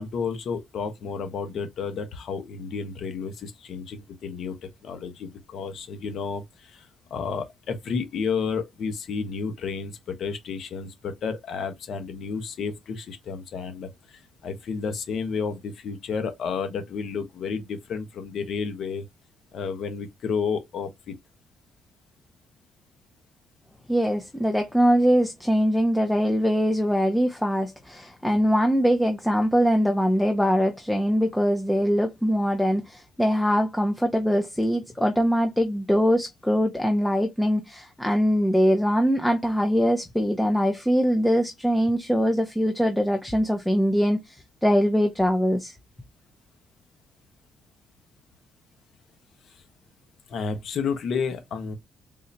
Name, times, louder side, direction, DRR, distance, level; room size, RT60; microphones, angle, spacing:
voice 1, 0.0-19.0 19.5-21.1 49.5-49.6 50.3-51.8, left 5 dB, 65° left, 1.0 m, -31 dB
voice 2, 23.9-45.7, equal, 5° left, 0.6 m, -22 dB
3.7 x 2.7 x 3.2 m
cardioid pair, 90°, 0 cm